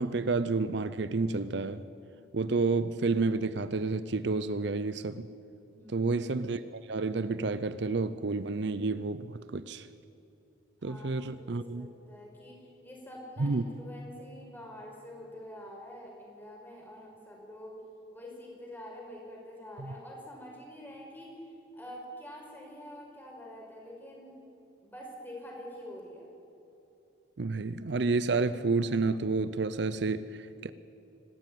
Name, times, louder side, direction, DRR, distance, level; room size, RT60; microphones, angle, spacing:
voice 1, 0.0-1.8 2.3-5.3 5.9-9.9 10.8-11.9 13.4-13.6 27.4-30.7, right 3 dB, 60° right, 0.6 m, -30 dB
voice 2, 5.7-6.1 10.8-17.8 18.1-24.4 24.8-26.3, equal, 10° left, 5.1 m, -46 dB
26.0 x 12.5 x 9.3 m
head